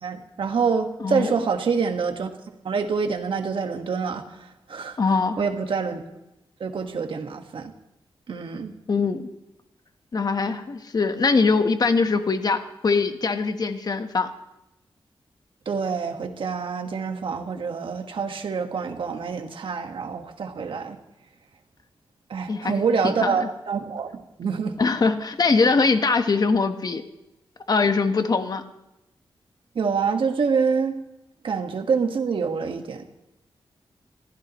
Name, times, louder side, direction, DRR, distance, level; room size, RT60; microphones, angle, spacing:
voice 1, 0.0-2.3 2.6-5.0 5.4-6.0 6.6-7.7 8.3-8.7 15.6-21.0 22.3-24.8 29.7-31.0 31.4-33.1, right 5 dB, 70° right, 5 dB, 1.7 m, -26 dB
voice 2, 1.0-1.3 5.0-5.4 8.9-9.3 10.1-14.3 22.5-23.5 24.8-27.0 27.7-28.6, left 4 dB, 45° left, 8 dB, 1.3 m, -22 dB
28.0 x 15.0 x 3.1 m, 0.90 s
wide cardioid pair, 115°, 9 cm